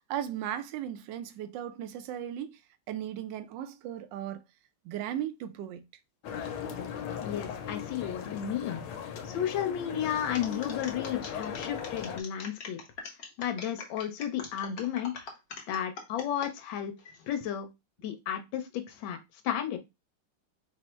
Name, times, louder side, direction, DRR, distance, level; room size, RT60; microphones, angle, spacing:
voice 1, 0.1-2.6 2.9-4.4 4.8-5.8, right 11 dB, 75° right, 1.1 m, -36 dB
sound 1, 6.2-12.2, left 8 dB, 85° left, 1.5 m, -38 dB
voice 2, 7.2-8.8 9.2-12.8 13.4-15.2 15.7-16.9 17.3-17.7 18.0-19.2 19.4-19.8, left 10 dB, 70° left, 1.5 m, -33 dB
sound 2, 10.3-16.5 17.0-17.4, left 4 dB, 55° left, 1.1 m, -43 dB
4.2 x 2.0 x 4.4 m
omnidirectional pair, 2.3 m